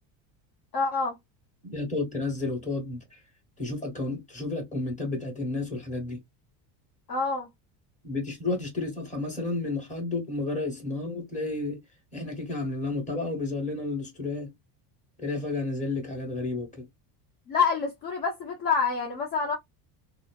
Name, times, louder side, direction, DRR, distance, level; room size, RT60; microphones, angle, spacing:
voice 1, 0.7-1.2 7.1-7.5 17.5-19.6, left 5 dB, 45° left, 0.9 m, -27 dB
voice 2, 1.6-3.2 3.6-6.2 8.0-11.8 12.1-14.5 15.2-16.9, left 2 dB, 15° left, 1.7 m, -31 dB
3.7 x 2.0 x 2.3 m
supercardioid pair, 115°, 48 cm